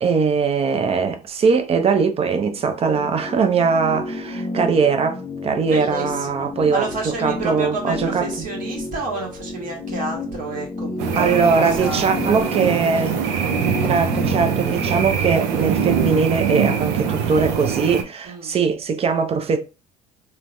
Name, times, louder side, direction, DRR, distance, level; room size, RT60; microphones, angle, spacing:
voice 1, 0.0-8.5 11.1-13.2 13.9-19.6, right 5 dB, 35° right, 0.6 m, -21 dB
sound 1, 2.6-15.0, left 2 dB, 35° left, 0.7 m, -31 dB
voice 2, 5.6-12.0 18.2-18.5, right 2 dB, 55° right, 1.4 m, -30 dB
sound 2, 11.0-18.0, right 7 dB, 80° right, 0.5 m, -23 dB
3.1 x 2.2 x 2.5 m
supercardioid pair, 80°, 16 cm